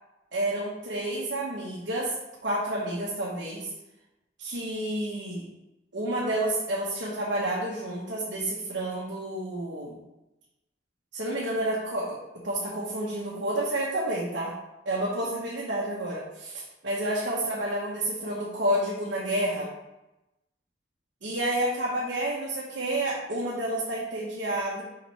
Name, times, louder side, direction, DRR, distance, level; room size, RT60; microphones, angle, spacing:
voice 1, 0.3-2.1 2.4-3.7 4.4-5.4 5.9-10.0 11.1-12.2 12.4-14.5 14.8-19.7 21.2-24.8, right 1 dB, 85° right, -6 dB, 1.3 m, -30 dB
5.6 x 5.1 x 3.4 m, 0.95 s
head